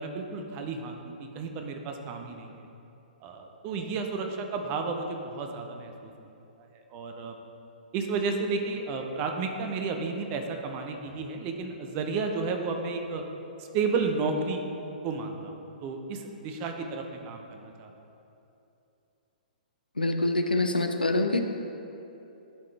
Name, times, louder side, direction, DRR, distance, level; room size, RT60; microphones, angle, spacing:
voice 1, 0.0-2.6 3.2-6.1 6.9-7.4 7.9-13.2 13.6-14.7 15.0-15.5 15.8-17.9, right 4 dB, 30° right, 4 dB, 0.6 m, -32 dB
voice 2, 20.0-21.4, left 2 dB, 90° left, 5 dB, 0.5 m, -25 dB
11.0 x 3.8 x 3.3 m, 2.8 s
figure-of-eight pair, 120°, 5 cm